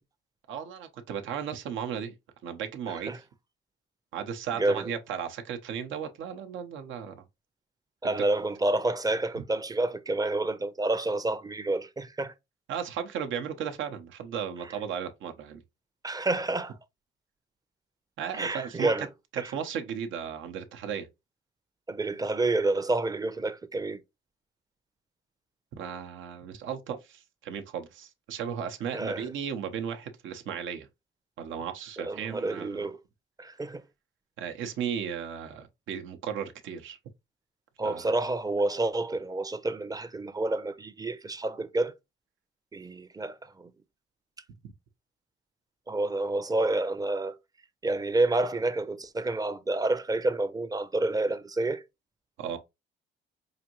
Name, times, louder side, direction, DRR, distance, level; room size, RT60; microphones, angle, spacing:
voice 1, 0.5-2.1 2.4-3.2 4.1-7.2 8.0-8.1 12.7-15.6 18.2-18.9 19.3-21.1 25.7-30.9 31.4-32.9 34.4-37.0 37.8-38.0 52.4-52.6, right 8 dB, 80° right, 0.8 m, -35 dB
voice 2, 2.9-3.2 4.6-4.9 8.0-12.3 16.0-16.8 18.3-19.1 19.4-19.5 21.9-24.0 28.9-29.3 32.0-33.0 33.4-33.8 37.8-41.9 42.7-43.7 45.9-47.3 47.8-51.8, right 2 dB, 20° right, 0.5 m, -29 dB
4.9 x 2.6 x 2.9 m
cardioid pair, 90°, 20 cm